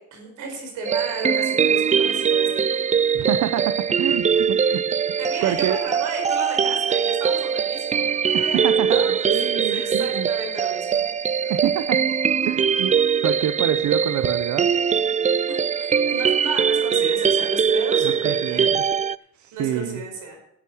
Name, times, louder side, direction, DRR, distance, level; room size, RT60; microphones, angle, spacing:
voice 1, 0.0-2.6 5.2-11.0 11.4-11.5 15.8-18.8 19.5-20.4, right 3 dB, 90° right, 3 dB, 4.8 m, -33 dB
sound 1, 0.8-19.2, right 7 dB, 25° right, 0.4 m, -22 dB
voice 2, 3.1-4.8 5.4-5.8 8.3-10.3 11.5-12.0 12.4-12.9 13.2-14.7 18.0-18.8 19.3-20.0, right 11 dB, 70° right, 11 dB, 0.8 m, -26 dB
11.0 x 8.9 x 6.3 m, 0.75 s
cardioid pair, 90°, 30 cm